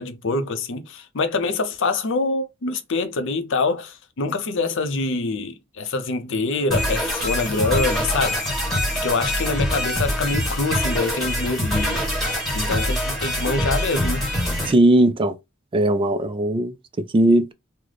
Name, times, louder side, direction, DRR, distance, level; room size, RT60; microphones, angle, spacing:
voice 1, 0.0-8.5 9.0-12.0 12.5-14.2, left 3 dB, 65° left, 0.6 m, -25 dB
sound 1, 6.7-14.7, equal, ahead, 1.5 m, -24 dB
voice 2, 14.7-15.3 15.7-17.5, right 1 dB, 25° right, 0.3 m, -18 dB
3.2 x 2.1 x 3.8 m
head